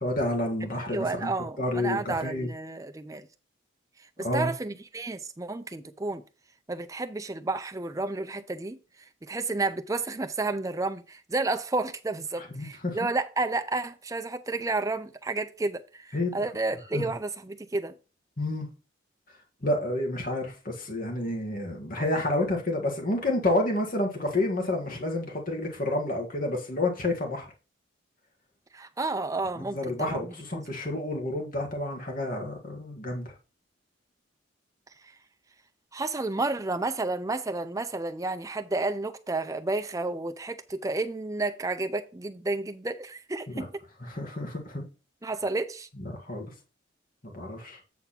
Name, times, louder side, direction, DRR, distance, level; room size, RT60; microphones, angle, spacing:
voice 1, 0.0-1.3 1.6-2.5 4.2-4.5 12.4-13.0 16.1-16.5 16.9-17.0 18.4-18.7 19.6-27.5 29.6-33.3 43.5-43.7 44.0-44.9 46.3-46.5 47.3-47.8, left 1 dB, 40° left, 1.7 m, -29 dB
voice 2, 0.9-3.3 4.2-6.2 6.7-8.8 9.2-17.9 28.7-30.6 35.9-43.8 45.2-45.9, right 3 dB, 15° right, 0.5 m, -31 dB
8.5 x 3.5 x 5.8 m
head